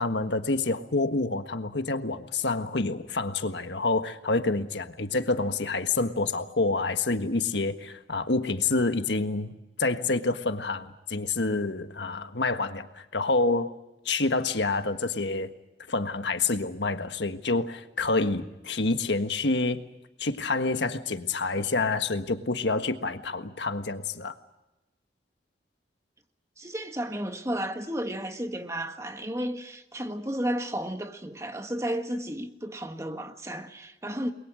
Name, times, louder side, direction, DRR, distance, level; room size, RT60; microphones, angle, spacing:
voice 1, 0.0-13.7 14.0-15.5 15.9-19.8 20.2-24.3, left 3 dB, 85° left, 1.6 m, -28 dB
voice 2, 26.6-34.3, right 1 dB, 15° right, 1.5 m, -33 dB
29.5 x 22.0 x 6.4 m
head